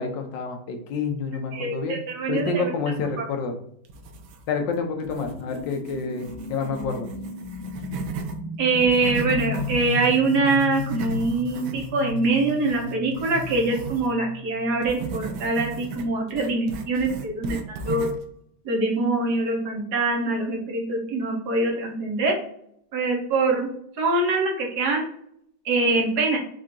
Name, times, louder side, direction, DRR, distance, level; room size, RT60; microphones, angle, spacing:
voice 1, 0.0-2.0 2.3-3.5 4.5-7.1, left 4 dB, 70° left, 4 dB, 1.5 m, -28 dB
voice 2, 1.5-2.7 8.6-18.1 18.6-22.4 22.9-23.7 24.0-25.0 25.6-26.4, right 3 dB, 60° right, 0 dB, 1.6 m, -24 dB
sound 1, 3.8-4.7 5.0-8.4 8.7-14.1 14.8-18.3, right 5 dB, 90° right, 1.5 m, -36 dB
sound 2, 5.2-15.6, left 4 dB, 5° left, 1.1 m, -35 dB
4.9 x 2.8 x 3.7 m, 0.68 s
omnidirectional pair, 2.1 m